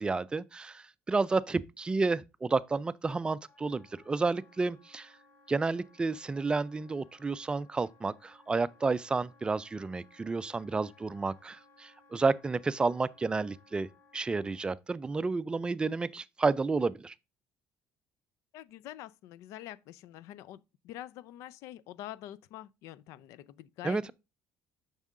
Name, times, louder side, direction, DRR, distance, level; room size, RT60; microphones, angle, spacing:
voice 1, 0.0-5.1 5.5-17.1 23.8-24.1, right 4 dB, 15° right, 0.4 m, -31 dB
Wind instrument woodwind instrument, 3.5-14.8, left 3 dB, 35° left, 3.5 m, -62 dB
voice 2, 18.5-24.1, left 13 dB, 80° left, 0.5 m, -46 dB
7.2 x 5.5 x 3.6 m
cardioid pair, 120°, 5 cm